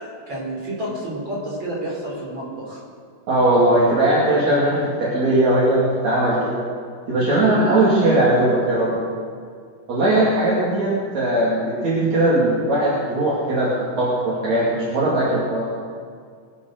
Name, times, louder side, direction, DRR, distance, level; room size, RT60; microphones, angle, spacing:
voice 1, 0.3-2.8, right 1 dB, 35° right, -5 dB, 5.2 m, -29 dB
voice 2, 3.3-6.7 7.1-9.0 9.9-15.7, right 1 dB, 60° right, -7 dB, 3.7 m, -19 dB
21.5 x 7.5 x 6.5 m, 2.1 s
omnidirectional pair, 3.6 m